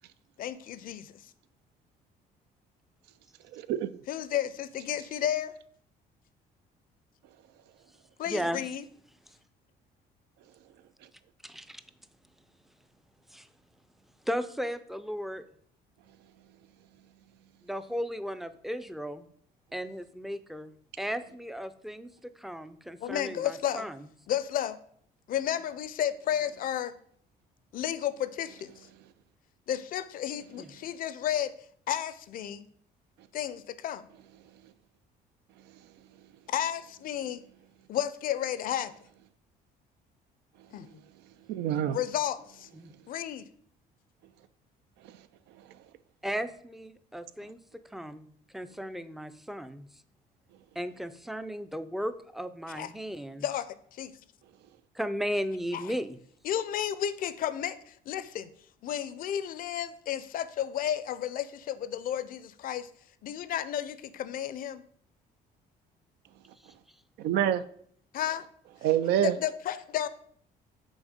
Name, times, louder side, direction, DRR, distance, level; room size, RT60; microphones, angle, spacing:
voice 1, 0.4-1.2 4.1-5.5 8.2-8.8 23.0-23.9 24.3-24.8 25.3-26.9 27.7-28.9 29.7-31.5 31.9-32.6 33.3-34.1 36.5-37.4 37.9-38.9 40.7-40.9 41.9-42.7 43.1-43.5 52.7-52.9 53.4-53.7 53.9-54.2 55.7-55.8 56.4-58.5 58.8-62.9 63.2-64.8 68.1-68.4 69.2-70.1, left 10 dB, 55° left, 0.5 m, -32 dB
voice 2, 3.5-3.9 41.5-42.0 67.2-67.6 68.8-69.3, right 10 dB, 80° right, 0.4 m, -26 dB
voice 3, 8.3-8.6 9.3-9.4 11.4-11.8 13.3-13.5 14.3-15.5 17.6-19.3 19.7-20.7 21.0-24.0 30.6-30.7 42.7-42.9 46.2-47.6 47.9-48.3 48.5-49.9 50.8-53.4 54.9-56.2 66.6-66.7, equal, ahead, 0.4 m, -35 dB
6.2 x 4.0 x 5.0 m
cardioid pair, 110°, 17 cm